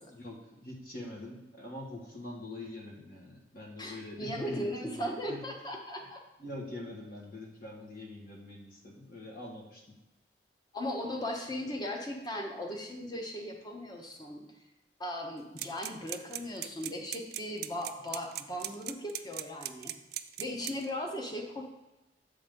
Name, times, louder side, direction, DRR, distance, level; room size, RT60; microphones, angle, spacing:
voice 1, 0.1-5.4 6.4-9.8, left 1 dB, 55° left, -1 dB, 1.6 m, -44 dB
voice 2, 3.8-6.2 10.7-14.4 15.0-19.9 20.4-21.6, left 1 dB, 25° left, 1 dB, 1.0 m, -37 dB
sound 1, 15.6-20.9, right 14 dB, 60° right, 0.4 m, -38 dB
7.1 x 3.5 x 5.3 m, 1.0 s
head